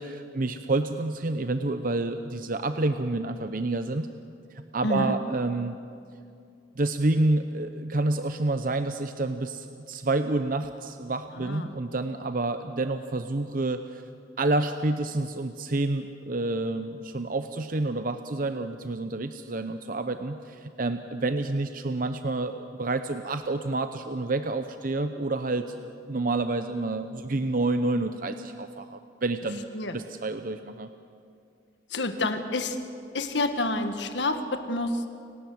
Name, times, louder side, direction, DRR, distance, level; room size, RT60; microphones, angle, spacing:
voice 1, 0.0-4.1 4.5-5.8 6.8-14.0 14.4-29.7 29.9-30.9, right 2 dB, 50° right, 9 dB, 0.8 m, -29 dB
voice 2, 4.8-5.1 11.3-11.8 29.7-30.0 31.9-32.8 33.1-35.1, left 2 dB, 75° left, 8 dB, 1.6 m, -28 dB
30.0 x 19.0 x 7.9 m, 2.5 s
head